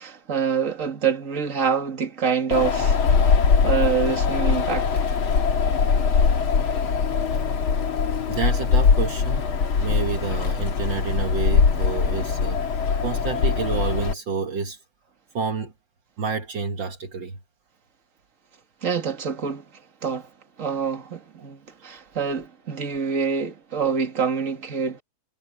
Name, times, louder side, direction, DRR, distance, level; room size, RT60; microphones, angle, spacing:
voice 1, 0.0-3.0 3.6-4.9 18.8-19.7 20.0-20.3 20.6-25.0, right 6 dB, 40° right, 2.4 m, -26 dB
Wind, 2.5-14.1, left 5 dB, 80° left, 2.8 m, -21 dB
voice 2, 8.3-9.5 9.8-14.8 15.3-15.7 16.2-17.4 21.9-22.0, right 5 dB, 65° right, 2.1 m, -29 dB
omnidirectional pair, 2.2 m